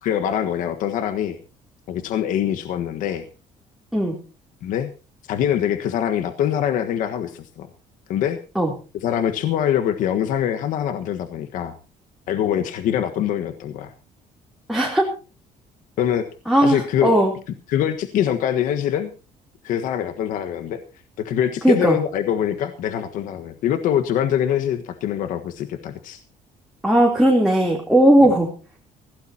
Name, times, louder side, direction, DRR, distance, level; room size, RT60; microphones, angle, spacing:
voice 1, 0.0-1.4 1.9-3.2 4.6-4.9 5.2-7.7 8.1-8.4 8.9-11.7 12.3-13.9 16.0-16.3 16.6-17.1 17.7-19.1 19.6-20.8 21.2-26.2, left 10 dB, 75° left, 8 dB, 1.4 m, -24 dB
voice 2, 14.7-15.1 16.5-17.3 21.6-21.9 26.8-28.5, right 1 dB, ahead, 1 dB, 3.2 m, -17 dB
21.0 x 16.5 x 2.8 m, 0.35 s
cardioid pair, 145°, 14 cm